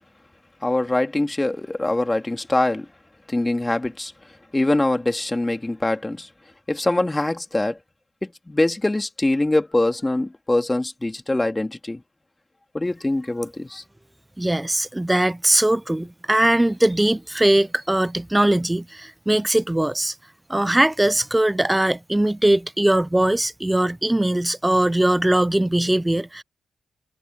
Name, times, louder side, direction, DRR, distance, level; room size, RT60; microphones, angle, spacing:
voice 1, 0.6-2.8 3.3-4.1 4.5-6.3 6.7-7.8 8.2-12.0 12.7-13.8, left 2 dB, 20° left, 2.4 m, -23 dB
voice 2, 14.4-20.1 20.5-26.4, right 1 dB, 15° right, 0.6 m, -20 dB
supercardioid pair, 50°, 0 cm